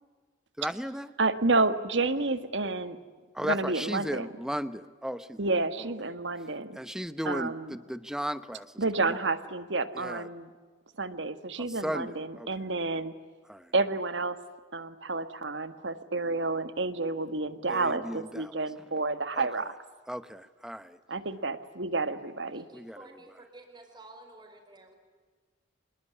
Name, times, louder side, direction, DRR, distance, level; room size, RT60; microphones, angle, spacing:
voice 1, 0.6-1.1 3.3-5.5 6.8-8.6 9.1-9.2 10.0-10.3 11.8-12.1 12.4-12.5 13.5-13.6 17.7-18.5 19.4-19.5 20.1-21.0 22.7-23.0, equal, 5° right, 13 dB, 0.9 m, -35 dB
voice 2, 1.2-3.0 3.4-4.3 5.4-6.8 7.2-7.8 8.8-10.5 11.0-13.1 13.7-14.4 14.7-19.7 21.1-22.7, right 3 dB, 70° right, 11 dB, 1.7 m, -30 dB
voice 3, 22.5-25.0, right 2 dB, 25° right, 4 dB, 4.8 m, -51 dB
26.5 x 21.5 x 9.7 m, 1.5 s
head